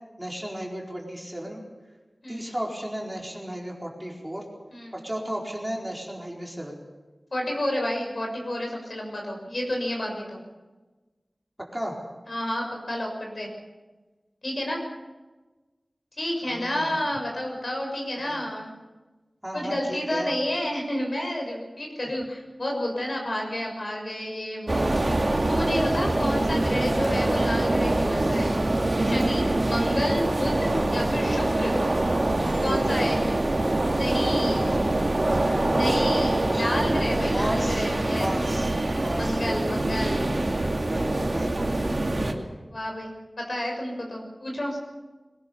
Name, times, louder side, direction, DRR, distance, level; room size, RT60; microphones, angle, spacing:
voice 1, 0.2-1.6 2.3-4.4 4.9-6.8 11.6-12.0 16.4-17.0 18.2-18.5 19.4-20.3 32.6-33.2 34.6-34.8 35.8-36.7 37.3-37.9 38.1-39.4 40.7-41.7, equal, 10° right, -1 dB, 4.6 m, -34 dB
voice 2, 7.3-10.4 12.3-13.5 14.4-14.8 16.2-18.7 19.5-24.9 25.5-28.5 29.0-31.8 32.6-33.6 33.9-34.7 35.7-38.5 39.2-40.3 42.7-44.8, left 1 dB, 60° left, 0 dB, 6.7 m, -30 dB
sound 1, 24.7-42.3, right 2 dB, 50° right, 2.5 m, -24 dB
22.0 x 19.0 x 7.2 m, 1.2 s
wide cardioid pair, 65°, 0 cm